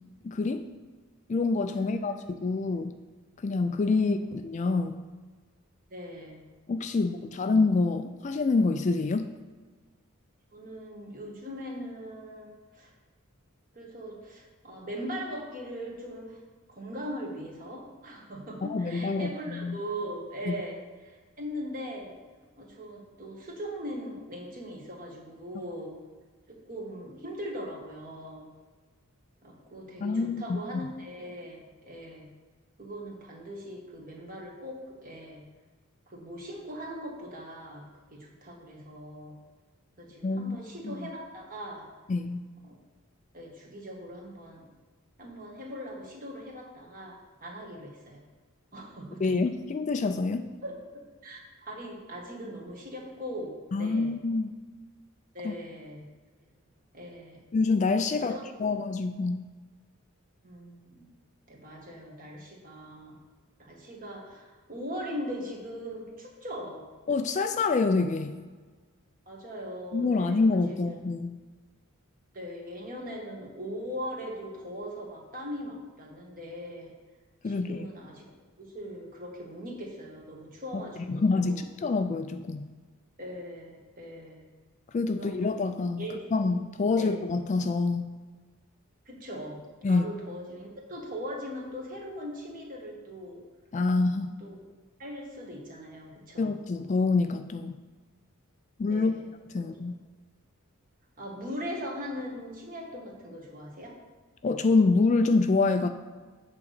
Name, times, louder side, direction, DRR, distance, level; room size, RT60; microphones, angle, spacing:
voice 1, 0.2-0.7 1.3-2.9 3.4-5.0 6.7-9.3 18.6-19.8 20.5-20.6 30.0-30.6 40.2-40.6 40.8-41.1 42.1-42.4 49.2-50.4 53.7-54.5 55.4-55.5 57.5-59.5 67.1-68.4 69.9-71.4 77.4-77.9 80.7-80.8 81.1-82.7 84.9-86.0 86.3-88.1 89.8-90.1 93.7-94.3 96.4-97.7 98.8-99.1 99.5-99.9 104.4-105.9, left 3 dB, 35° left, 8 dB, 0.3 m, -26 dB
voice 2, 1.7-2.2 2.6-2.7 4.0-4.3 5.9-6.4 6.9-7.5 10.5-12.9 13.7-16.4 16.7-20.8 21.0-22.1 22.6-25.9 26.5-28.5 29.4-32.3 32.8-35.4 36.1-39.4 40.0-41.8 42.6-42.8 43.3-44.7 45.2-48.2 48.7-49.3 50.6-50.7 51.2-54.1 55.3-56.1 56.9-57.4 58.1-58.8 60.4-61.1 61.5-63.2 63.6-66.8 69.3-70.8 72.3-76.9 77.4-78.3 78.6-81.6 83.2-84.5 85.1-85.5 86.0-86.3 87.0-87.1 89.0-93.4 94.4-94.6 95.0-96.5 98.9-99.2 101.2-103.9, equal, 40° right, -1 dB, 1.6 m, -40 dB
8.6 x 3.9 x 6.6 m, 1.4 s
head